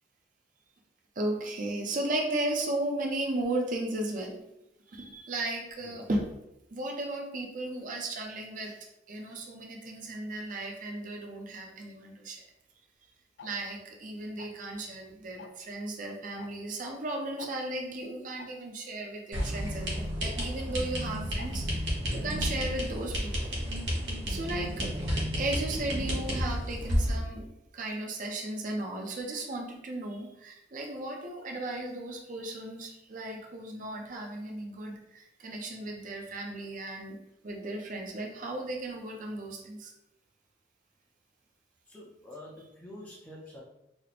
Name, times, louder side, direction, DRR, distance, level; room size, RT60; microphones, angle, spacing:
voice 1, 1.2-4.4 4.9-6.3 6.7-8.8 9.1-12.4 13.4-23.5 24.3-25.0 25.3-27.5 27.7-37.2 37.4-39.9, right 2 dB, 45° right, 1 dB, 0.5 m, -35 dB
Tick-tock, 13.4-13.5 14.4-14.7 15.4-15.6 16.4-16.5 16.8-16.9 17.4-17.5 18.4-18.5 19.4-19.5 20.4-20.5 21.4-21.5 22.4-22.5, left 5 dB, 60° left, 0.3 m, -46 dB
sound 1, 19.3-27.2, equal, 65° right, 1.0 m, -31 dB
voice 2, 41.9-43.6, left 1 dB, 10° left, -5 dB, 0.5 m, -47 dB
2.9 x 2.1 x 4.0 m, 0.84 s
head